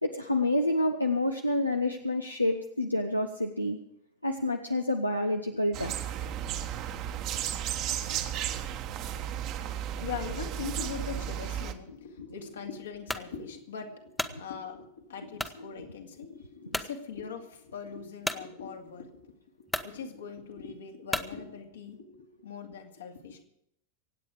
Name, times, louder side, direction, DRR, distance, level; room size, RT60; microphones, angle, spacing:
voice 1, 0.0-3.8 4.2-6.1 14.3-14.4, left 1 dB, 85° left, 5 dB, 0.9 m, -28 dB
sound 1, 5.7-11.7, right 10 dB, 40° right, 1.2 m, -34 dB
voice 2, 10.0-23.4, left 6 dB, 65° left, 3 dB, 2.3 m, -41 dB
sound 2, 13.1-13.3 13.9-14.4 15.4-15.6 16.1-16.2 16.7-16.9 18.2-18.4 19.2-19.3 19.7-19.9 21.1-21.3, left 1 dB, 5° left, 0.9 m, -33 dB
25.0 x 8.9 x 4.9 m, 0.74 s
figure-of-eight pair, 90°, 0 cm